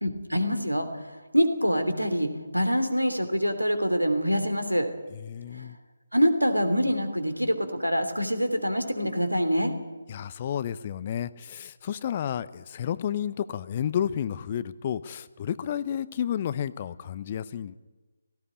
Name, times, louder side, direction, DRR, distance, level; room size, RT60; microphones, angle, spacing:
voice 1, 0.0-0.9 1.3-4.9 5.6-5.7 6.1-9.7, equal, 90° right, 8 dB, 3.1 m, -25 dB
voice 2, 5.1-5.8 10.1-17.8, left 9 dB, 30° left, 17 dB, 0.6 m, -31 dB
18.0 x 16.0 x 9.8 m, 1.2 s
figure-of-eight pair, 150°, 0 cm